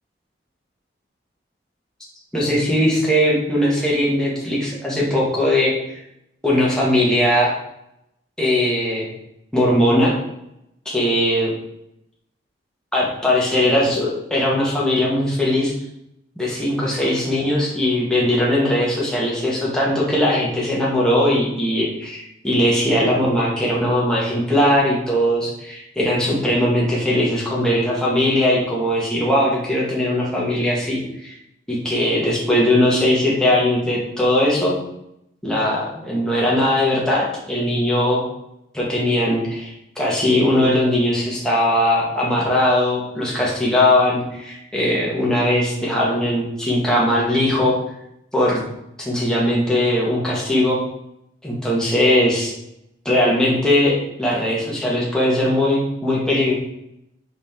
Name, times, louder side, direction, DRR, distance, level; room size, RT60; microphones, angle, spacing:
voice 1, 2.3-5.7 6.4-7.5 8.4-9.1 9.5-10.1 10.8-11.5 12.9-15.7 16.4-31.3 31.7-34.7 35.4-38.2 38.7-47.8 48.3-48.6 49.0-50.8 51.4-52.5 53.0-56.5, left 1 dB, 5° left, -5 dB, 1.5 m, -19 dB
5.3 x 5.0 x 3.7 m, 0.82 s
head